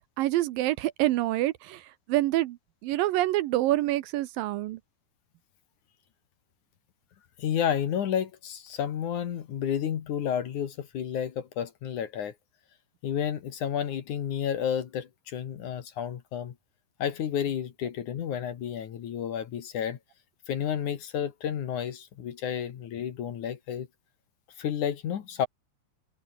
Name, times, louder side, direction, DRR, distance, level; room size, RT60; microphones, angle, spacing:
voice 1, 0.2-2.6 2.8-4.8, right 15 dB, 80° right, 2.3 m, -26 dB
voice 2, 7.4-12.3 13.0-16.5 17.0-20.0 20.5-23.9 24.6-25.5, left 9 dB, 55° left, 2.8 m, -31 dB
omnidirectional pair, 4.5 m